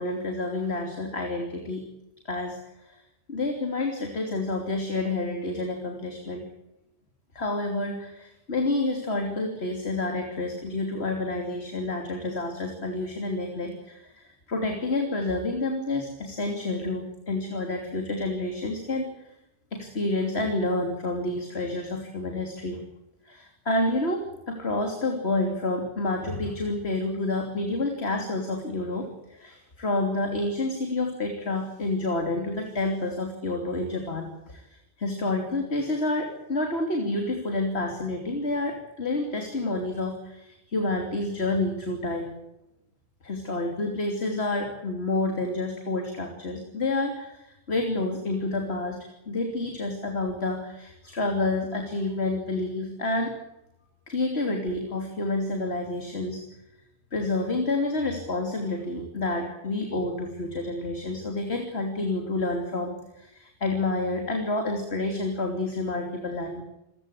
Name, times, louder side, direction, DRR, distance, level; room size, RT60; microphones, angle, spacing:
voice 1, 0.0-1.8 2.2-3.0 3.3-6.4 7.3-19.1 19.7-22.8 23.2-42.3 43.2-49.0 49.3-53.4 54.1-56.4 57.1-66.6, left 2 dB, 60° left, 3 dB, 3.3 m, -29 dB
27.5 x 16.0 x 8.3 m, 0.89 s
omnidirectional pair, 1.2 m